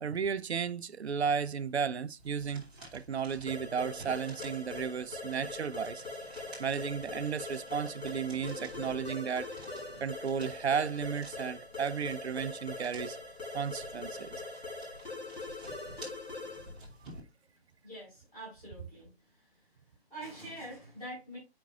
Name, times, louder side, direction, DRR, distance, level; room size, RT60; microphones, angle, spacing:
voice 1, 0.0-6.0 6.6-9.5 10.0-13.2 13.5-14.4, right 6 dB, 85° right, 0.5 m, -34 dB
sound 1, 2.2-17.2, right 1 dB, 10° right, 0.8 m, -53 dB
sound 2, 3.5-16.8, left 3 dB, 75° left, 3.3 m, -42 dB
voice 2, 17.8-19.7 20.1-21.4, right 1 dB, 10° left, 4.5 m, -45 dB
8.4 x 5.2 x 2.4 m
figure-of-eight pair, 165°, 32 cm